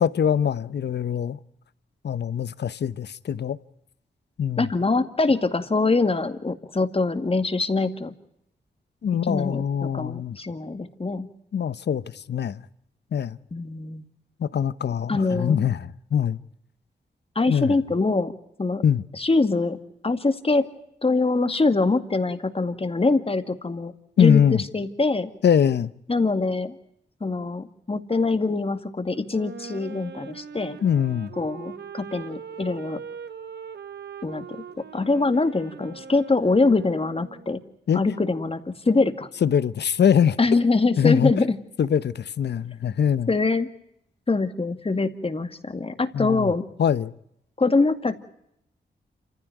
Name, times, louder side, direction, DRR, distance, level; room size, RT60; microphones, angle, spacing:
voice 1, 0.0-1.4 2.0-3.6 4.4-4.7 9.0-10.4 11.5-12.6 13.1-13.4 14.4-16.4 17.5-17.7 18.8-19.0 24.2-24.6 25.4-25.9 30.8-31.3 37.9-38.0 39.4-40.4 41.0-41.3 41.8-43.3 46.1-46.5 46.8-47.1, left 8 dB, 70° left, 0.9 m, -22 dB
voice 2, 4.6-8.1 9.3-11.3 13.5-14.1 15.1-15.7 17.4-18.3 18.6-18.8 19.2-19.8 20.0-20.6 21.0-25.3 26.1-26.8 27.2-30.8 31.4-33.0 34.2-34.4 34.9-37.6 37.9-39.3 40.4-41.6 43.3-43.7 44.3-46.7 47.6-48.2, left 3 dB, 30° left, 2.2 m, -23 dB
Wind instrument woodwind instrument, 29.3-37.6, right 6 dB, 65° right, 1.5 m, -40 dB
27.5 x 15.5 x 9.2 m
cardioid pair, 65°, 18 cm